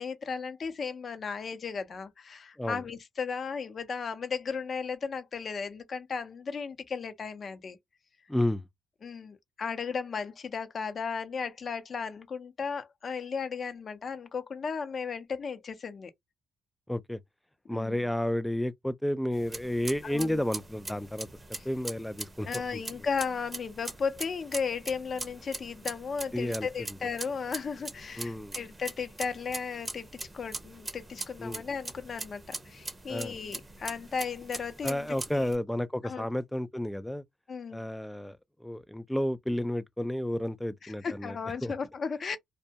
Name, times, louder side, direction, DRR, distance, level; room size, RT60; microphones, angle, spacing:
voice 1, 0.0-7.8 9.0-16.1 17.7-18.0 20.0-20.4 21.6-21.7 22.4-30.1 30.3-35.5 36.0-36.3 37.5-37.9 40.8-42.4, left 5 dB, 45° left, 0.6 m, -35 dB
voice 2, 8.3-8.6 16.9-17.2 17.7-21.3 21.7-22.5 26.3-26.7 28.2-28.6 31.4-31.6 33.1-33.3 34.8-37.2 37.7-38.4 38.6-41.4 41.6-41.7, left 1 dB, 5° left, 0.3 m, -31 dB
sound 1, 19.3-35.5, right 2 dB, 25° right, 0.7 m, -42 dB
2.1 x 2.1 x 2.7 m
cardioid pair, 90°, 0 cm